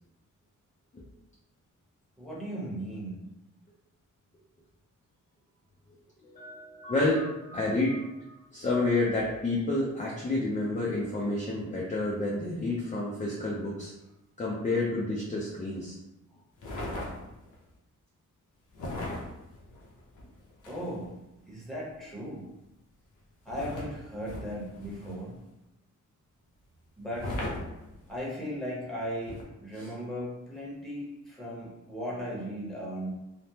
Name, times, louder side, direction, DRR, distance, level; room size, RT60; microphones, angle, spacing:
voice 1, 2.2-3.2 20.7-21.2 21.5-22.5 23.4-25.4 27.0-27.4 28.1-33.1, equal, ahead, -6 dB, 0.9 m, -37 dB
voice 2, 6.2-13.9 14.4-16.0 16.6-16.7 29.7-29.9, left 2 dB, 25° left, -5 dB, 0.4 m, -30 dB
sound 1, 16.6-17.6 18.7-21.1 23.5-25.4 27.1-28.3 29.3-29.4, left 1 dB, 75° left, 0.7 m, -38 dB
3.3 x 2.0 x 2.8 m, 0.93 s
wide cardioid pair, 150°, 31 cm